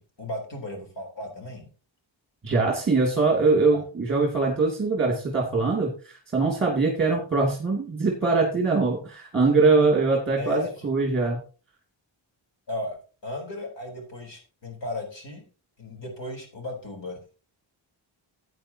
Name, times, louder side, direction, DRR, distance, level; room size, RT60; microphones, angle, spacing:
voice 1, 0.0-1.7 3.7-3.8 10.3-10.9 12.7-13.0 13.2-15.4 15.8-17.3, left 1 dB, 65° left, 2 dB, 3.9 m, -35 dB
voice 2, 2.4-11.4, right 3 dB, 25° right, -3 dB, 2.6 m, -22 dB
14.5 x 9.1 x 2.9 m, 0.36 s
wide cardioid pair, 140°, 47 cm